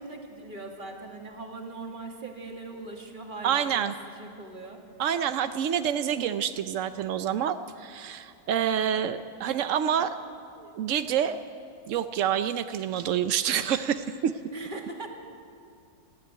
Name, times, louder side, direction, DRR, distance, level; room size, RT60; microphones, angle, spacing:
voice 1, 0.0-4.8 14.5-15.1, right 2 dB, 25° right, 1 dB, 2.2 m, -40 dB
voice 2, 3.4-3.9 5.0-10.2 10.6-11.4 11.9-14.3, right 9 dB, 75° right, 10 dB, 0.7 m, -27 dB
20.0 x 14.5 x 9.3 m, 2.5 s
omnidirectional pair, 2.0 m